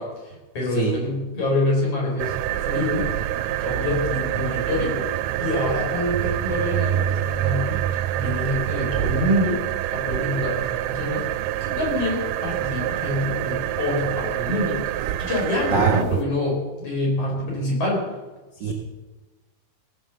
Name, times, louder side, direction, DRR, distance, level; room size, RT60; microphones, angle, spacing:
voice 1, 0.0-3.1 3.6-5.1 5.4-7.8 8.1-9.6 9.9-11.2 11.6-14.8 15.2-18.1, left 1 dB, 40° left, -3 dB, 5.6 m, -26 dB
sound 1, 2.2-16.2, right 12 dB, 85° right, 2.5 m, -26 dB
voice 2, 15.7-16.0 18.6-18.7, right 5 dB, 55° right, -1 dB, 1.3 m, -22 dB
17.5 x 7.2 x 7.4 m, 1.2 s
omnidirectional pair, 4.5 m